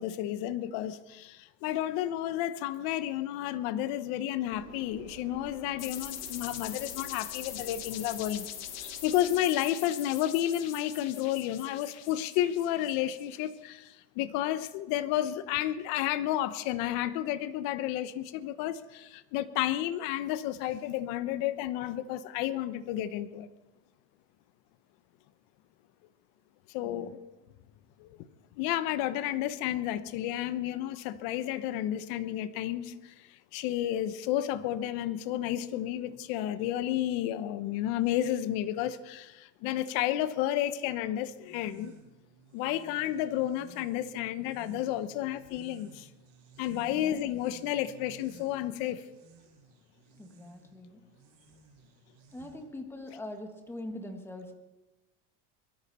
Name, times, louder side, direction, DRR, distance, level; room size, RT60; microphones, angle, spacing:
voice 1, 0.0-8.5 8.8-23.5 26.7-27.2 28.0-28.2 28.6-41.9 42.5-46.1 46.6-49.0, left 12 dB, 65° left, 1.0 m, -31 dB
Engine, 4.5-9.5, right 6 dB, 85° right, 4.2 m, -52 dB
sound 1, 5.8-13.6, left 11 dB, 45° left, 1.4 m, -42 dB
sound 2, 41.4-52.9, right 6 dB, 60° right, 4.7 m, -56 dB
voice 2, 46.9-47.4 50.1-51.1 52.3-54.5, left 1 dB, 5° left, 1.9 m, -43 dB
22.5 x 12.5 x 4.4 m
supercardioid pair, 140°, 36 cm